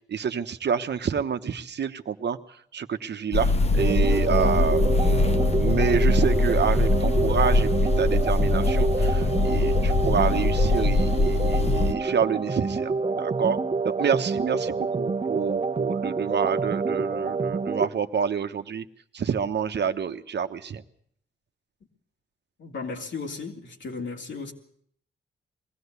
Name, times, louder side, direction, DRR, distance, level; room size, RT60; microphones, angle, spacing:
voice 1, 0.1-2.4 2.7-13.6 13.8-18.9 19.1-20.8, right 7 dB, 60° right, 8 dB, 1.1 m, -28 dB
sound 1, 3.3-11.9, left 2 dB, 30° left, 0.9 m, -22 dB
sound 2, 3.8-17.9, right 4 dB, 30° right, 1.0 m, -27 dB
voice 2, 22.6-24.5, left 4 dB, 70° left, 1 dB, 3.3 m, -35 dB
22.0 x 16.5 x 8.2 m, 0.64 s
wide cardioid pair, 110°, 20 cm